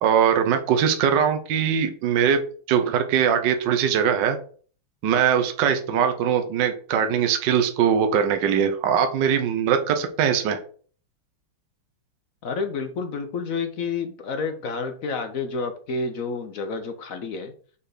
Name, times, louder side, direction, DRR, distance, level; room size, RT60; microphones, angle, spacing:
voice 1, 0.0-2.4 2.7-4.4 5.0-10.6, right 8 dB, 65° right, 7 dB, 1.4 m, -21 dB
voice 2, 12.4-17.5, left 4 dB, 60° left, 7 dB, 0.9 m, -29 dB
5.5 x 4.3 x 4.9 m, 0.43 s
omnidirectional pair, 2.2 m